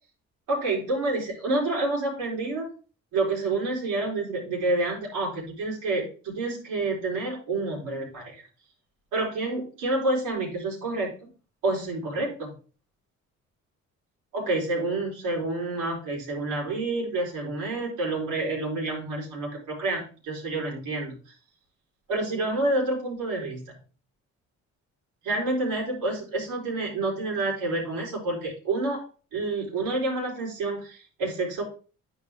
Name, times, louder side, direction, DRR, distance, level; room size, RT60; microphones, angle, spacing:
voice 1, 0.5-2.7 3.1-8.4 9.1-11.3 11.6-12.5 14.3-21.1 22.1-23.6 25.2-29.0 29.3-31.6, right 2 dB, 85° right, -3 dB, 4.4 m, -28 dB
10.0 x 4.8 x 3.5 m, 0.37 s
cardioid pair, 90°, 30 cm